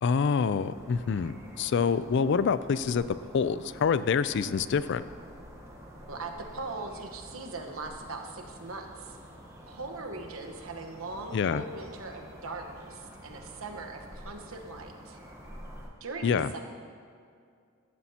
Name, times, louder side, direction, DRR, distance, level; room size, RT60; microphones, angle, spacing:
voice 1, 0.0-3.0 3.3-5.0 11.3-11.6 16.2-16.5, left 6 dB, 55° left, 15 dB, 0.3 m, -26 dB
sound 1, 0.6-15.9, equal, 15° right, 1.1 m, -48 dB
voice 2, 6.1-9.2 9.7-15.2 16.0-16.6, right 3 dB, 80° right, 4 dB, 1.1 m, -40 dB
14.5 x 11.5 x 2.8 m, 2.2 s
head